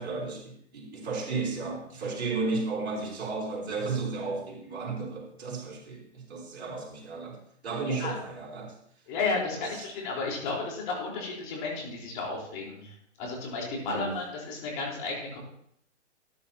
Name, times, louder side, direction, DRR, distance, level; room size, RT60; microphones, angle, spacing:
voice 1, 0.0-7.4 7.6-8.7 9.5-9.9 13.8-14.1, right 4 dB, 60° right, -2 dB, 3.9 m, -34 dB
voice 2, 7.7-8.2 9.1-15.4, left 3 dB, 40° left, -2 dB, 4.3 m, -33 dB
14.0 x 10.0 x 2.9 m, 0.69 s
hypercardioid pair, 130°, 36 cm